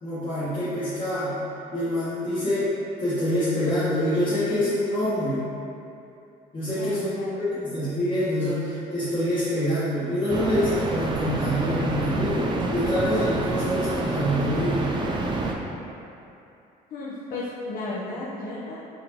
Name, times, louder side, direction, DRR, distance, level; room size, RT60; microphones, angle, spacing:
voice 1, 0.0-1.4 1.7-2.7 3.0-5.4 6.5-14.9, equal, 30° left, -13 dB, 1.1 m, -26 dB
voice 2, 6.7-7.5 14.8-15.0 16.9-18.9, left 2 dB, 60° left, -8 dB, 0.8 m, -34 dB
sound 1, 10.3-15.6, right 2 dB, 25° right, 0.5 m, -28 dB
4.1 x 3.9 x 2.9 m, 2.7 s
cardioid pair, 110°, 17 cm